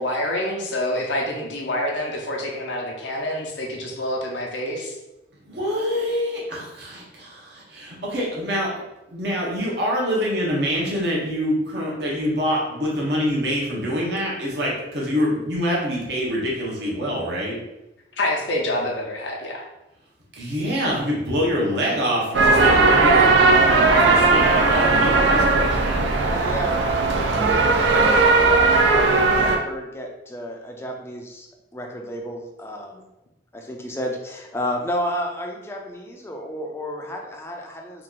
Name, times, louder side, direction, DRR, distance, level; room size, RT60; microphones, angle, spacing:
voice 1, 0.0-5.0 18.2-19.6 25.0-25.1, left 1 dB, 85° left, -1 dB, 0.6 m, -27 dB
voice 2, 5.5-8.7 9.1-17.6 20.4-26.0, equal, 65° right, -4 dB, 0.9 m, -25 dB
sound 1, 22.3-29.6, right 3 dB, 85° right, 0.5 m, -17 dB
voice 3, 26.2-31.5 31.7-33.0 33.5-38.0, equal, 15° left, 1 dB, 0.4 m, -32 dB
2.9 x 2.4 x 3.6 m, 0.95 s
head